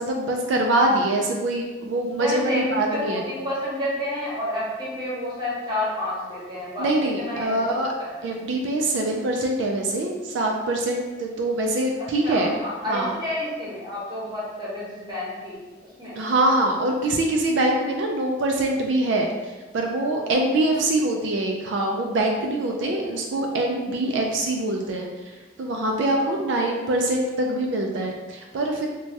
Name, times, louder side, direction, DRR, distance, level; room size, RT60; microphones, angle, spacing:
voice 1, 0.0-3.2 6.8-7.9 8.2-12.5 12.9-13.1 16.2-25.1 25.6-28.9, right 1 dB, 80° right, 1 dB, 0.3 m, -24 dB
voice 2, 2.2-6.9 7.2-8.3 12.0-15.6 16.0-16.2 20.7-20.8 23.0-23.5 24.1-24.3 26.1-26.6, left 1 dB, 25° right, -7 dB, 0.8 m, -30 dB
3.1 x 2.2 x 2.7 m, 1.3 s
head